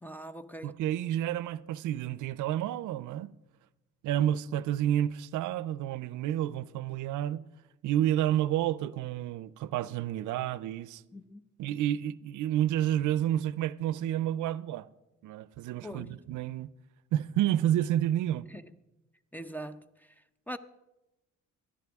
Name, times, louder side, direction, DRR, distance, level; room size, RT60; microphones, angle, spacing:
voice 1, 0.0-0.8 11.1-11.4 15.8-16.2 18.5-18.8 19.3-20.1 20.5-20.6, equal, 5° left, 0.6 m, -42 dB
voice 2, 0.6-3.3 4.0-7.4 7.8-11.0 11.6-14.9 15.2-16.7 17.1-18.5, right 12 dB, 80° right, 0.5 m, -30 dB
18.5 x 11.5 x 3.5 m
cardioid pair, 90°, 30 cm